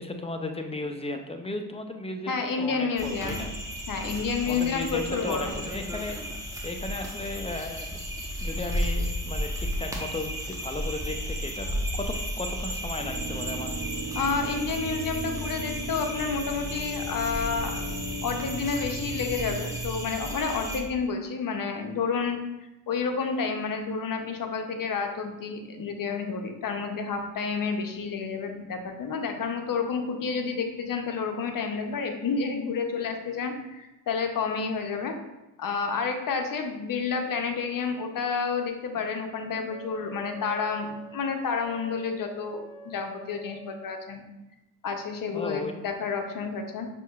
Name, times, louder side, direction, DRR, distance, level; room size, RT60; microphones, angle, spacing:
voice 1, 0.0-3.5 4.5-6.2 6.6-8.0 8.4-13.7 45.3-45.7, left 2 dB, 15° left, 5 dB, 0.4 m, -35 dB
voice 2, 2.3-3.4 3.9-5.6 14.1-17.8 18.2-22.4 22.9-35.1 35.6-44.2 44.8-46.9, left 5 dB, 50° left, 5 dB, 0.7 m, -30 dB
sound 1, 3.0-20.8, equal, 5° right, 0.9 m, -34 dB
sound 2, 13.0-20.0, right 1 dB, 45° right, 0.8 m, -36 dB
Wind instrument woodwind instrument, 39.6-44.1, right 3 dB, 60° right, 1.5 m, -48 dB
5.9 x 2.9 x 2.3 m, 0.98 s
supercardioid pair, 60°, 44 cm